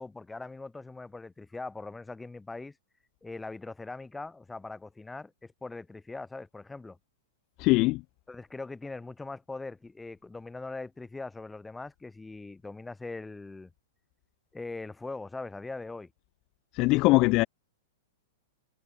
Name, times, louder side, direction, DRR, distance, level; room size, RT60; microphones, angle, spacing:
voice 1, 0.0-2.7 3.2-7.0 8.3-13.7 14.5-16.1, left 3 dB, 10° left, 1.3 m, -41 dB
voice 2, 7.6-8.0 16.7-17.5, left 23 dB, 35° left, 0.3 m, -21 dB
figure-of-eight pair, 100°, 0 cm